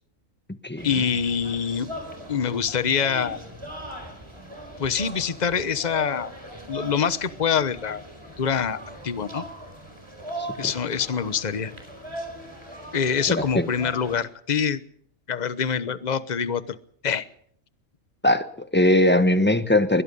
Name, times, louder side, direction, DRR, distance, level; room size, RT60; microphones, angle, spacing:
voice 1, 0.8-1.9 2.3-3.4 4.8-6.3 6.7-8.0 8.4-9.4 10.6-11.7 12.9-14.8 15.3-16.8 17.0-17.3, left 7 dB, 35° left, 14 dB, 1.1 m, -25 dB
sound 1, 0.8-14.2, right 1 dB, 20° right, 4.8 m, -39 dB
voice 2, 10.4-10.7 13.3-13.7 18.2-20.0, left 1 dB, 10° left, 10 dB, 1.1 m, -20 dB
23.0 x 21.0 x 5.5 m, 0.62 s
omnidirectional pair, 1.3 m